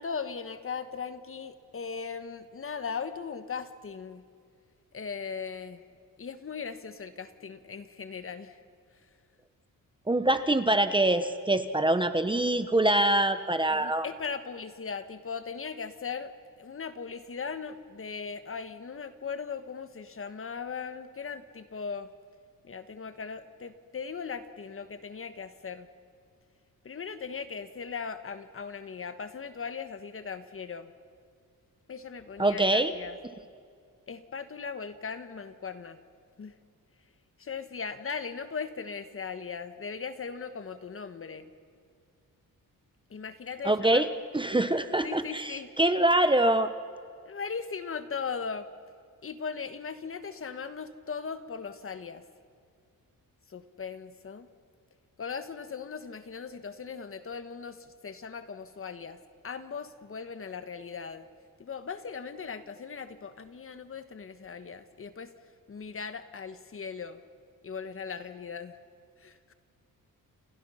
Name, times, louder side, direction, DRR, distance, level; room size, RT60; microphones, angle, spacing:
voice 1, 0.0-4.2 4.9-5.8 6.2-8.6 13.7-22.1 22.6-25.9 26.8-30.9 31.9-33.2 34.1-36.0 36.4-36.6 37.4-41.5 43.1-44.1 45.0-45.7 47.2-48.7 49.2-52.2 53.5-54.5 55.2-61.3 61.6-65.3 65.7-67.2 67.6-68.8 69.2-69.5, left 5 dB, 40° left, 10 dB, 1.4 m, -38 dB
voice 2, 10.1-14.0 32.4-32.9 43.6-44.1 44.3-46.7, right 1 dB, 15° right, 10 dB, 0.9 m, -24 dB
29.0 x 29.0 x 5.7 m, 2.2 s
wide cardioid pair, 140°, 35 cm